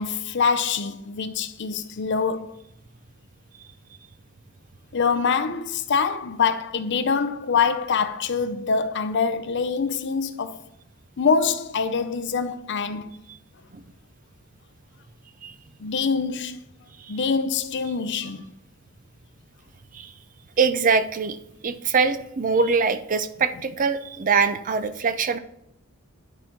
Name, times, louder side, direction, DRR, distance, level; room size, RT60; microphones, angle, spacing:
voice 1, 0.0-2.6 4.9-10.6 11.2-13.1 15.8-16.6 17.1-18.5, left 5 dB, 55° left, 0.5 m, -24 dB
voice 2, 20.6-21.4 21.6-25.4, right 5 dB, 40° right, 0.5 m, -23 dB
10.5 x 4.4 x 3.8 m
head